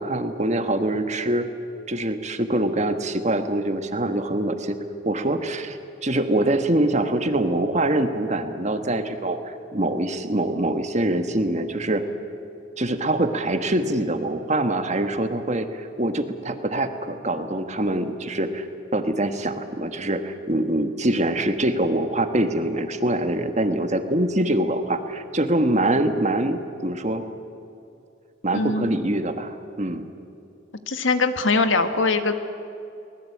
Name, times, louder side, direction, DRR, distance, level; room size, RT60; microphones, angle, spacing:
voice 1, 0.0-1.5 1.9-4.7 5.0-12.0 12.8-18.7 18.9-27.2 28.4-30.1, right 1 dB, 35° right, 7 dB, 1.4 m, -24 dB
voice 2, 28.5-29.0 30.9-32.3, left 3 dB, 75° left, 8 dB, 1.6 m, -22 dB
23.5 x 20.0 x 8.6 m, 2.6 s
head